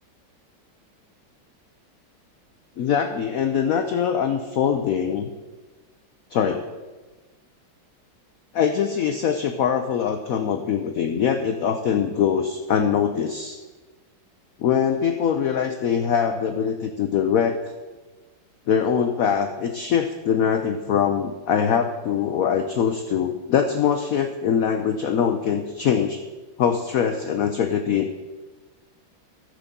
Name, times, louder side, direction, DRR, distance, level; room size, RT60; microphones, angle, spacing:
voice 1, 2.8-5.3 6.3-6.7 8.5-13.6 14.6-17.6 18.7-26.2 26.6-28.1, left 7 dB, 75° left, 7 dB, 0.8 m, -23 dB
13.5 x 5.0 x 6.8 m, 1.3 s
omnidirectional pair, 2.2 m